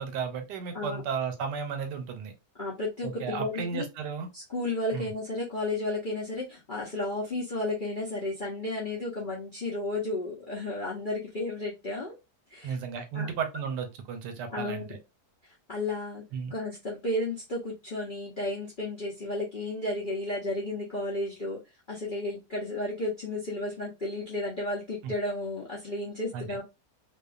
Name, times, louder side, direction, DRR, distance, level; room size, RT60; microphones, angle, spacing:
voice 1, 0.0-2.3 3.0-4.3 4.9-5.1 12.6-15.0 16.3-16.5 25.0-25.1 26.3-26.5, right 6 dB, 80° right, 7 dB, 1.3 m, -34 dB
voice 2, 2.6-3.9 4.3-12.2 12.5-12.7 13.1-13.3 14.5-15.0 15.4-16.2 16.5-21.6 21.9-26.6, left 2 dB, 60° left, -5 dB, 0.5 m, -33 dB
2.7 x 2.3 x 2.3 m, 0.24 s
omnidirectional pair, 1.8 m